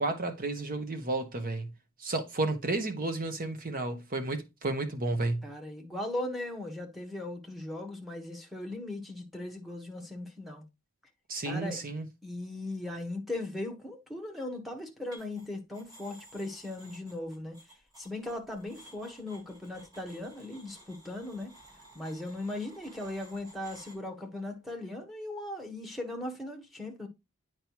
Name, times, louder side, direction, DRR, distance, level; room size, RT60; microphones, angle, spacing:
voice 1, 0.0-1.7 2.0-5.4 11.3-12.1, right 2 dB, 40° right, 1.1 m, -32 dB
voice 2, 5.4-10.6 11.4-11.8 12.2-17.6 18.0-21.5 21.9-27.1, left 1 dB, ahead, 1.2 m, -38 dB
sound 1, 15.1-15.5 15.7-23.9, right 1 dB, 20° right, 2.9 m, -55 dB
8.7 x 4.7 x 3.0 m
head